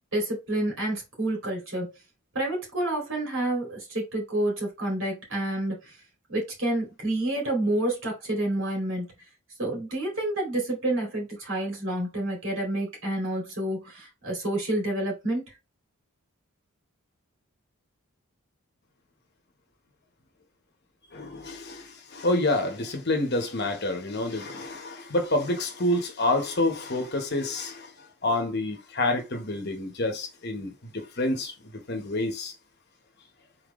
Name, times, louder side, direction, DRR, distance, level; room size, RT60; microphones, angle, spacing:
voice 1, 0.1-1.9 2.3-5.9 6.3-9.1 9.6-15.4, right 1 dB, 60° right, 2.6 m, -29 dB
voice 2, 21.1-32.5, left 2 dB, 50° left, 1.1 m, -28 dB
4.4 x 3.9 x 3.1 m
head